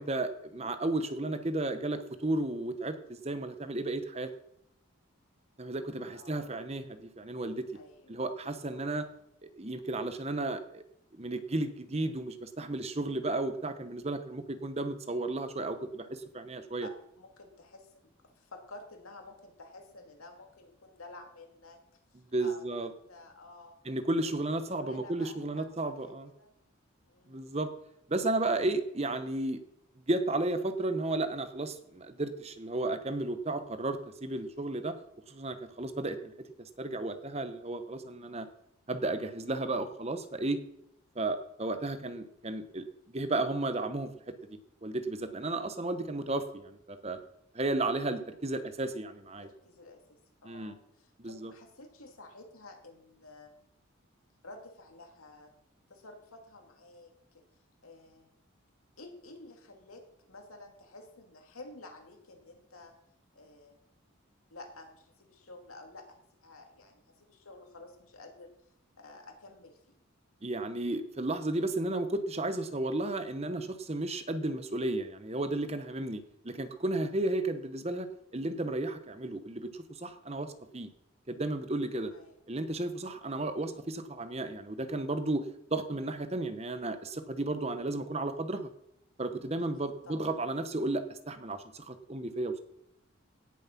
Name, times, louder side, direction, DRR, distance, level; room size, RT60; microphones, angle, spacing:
voice 1, 0.0-4.3 5.6-7.7 8.1-9.1 9.4-10.8 11.1-16.9 22.3-22.9 23.8-26.3 27.3-27.7 28.1-29.6 30.1-35.0 35.3-36.3 36.6-38.5 38.9-40.6 41.1-47.2 47.5-49.5 50.4-50.8 51.2-51.5 70.4-80.9 81.3-82.1 82.5-88.7 89.2-92.5, right 2 dB, 30° right, 10 dB, 0.9 m, -33 dB
voice 2, 6.1-6.6 7.7-8.2 8.7-9.0 16.8-17.9 18.3-21.8 22.1-23.8 24.2-25.7 25.9-26.5 27.1-27.5 49.4-53.5 54.4-55.5 55.9-57.4 57.8-58.3 59.0-60.0 60.3-62.9 63.3-63.8 64.5-68.5 69.0-70.0 82.1-82.3 89.6-90.4, left 2 dB, 85° left, 4 dB, 2.6 m, -51 dB
17.0 x 7.4 x 5.9 m, 0.78 s
head